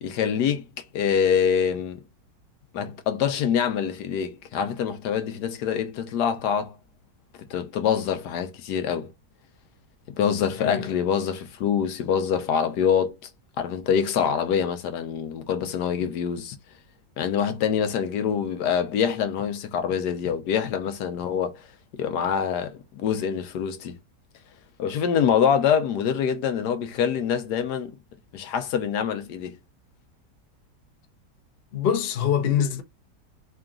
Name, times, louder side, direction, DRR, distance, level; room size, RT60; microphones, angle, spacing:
voice 1, 0.0-0.6 0.9-2.0 2.7-6.8 7.5-9.1 10.2-13.1 13.6-16.6 17.2-21.5 22.0-24.0 24.8-27.9 28.3-29.6, left 7 dB, 75° left, 1.1 m, -25 dB
voice 2, 10.6-11.0 31.7-32.8, left 9 dB, 55° left, 0.7 m, -24 dB
3.8 x 2.4 x 3.6 m
omnidirectional pair, 1.9 m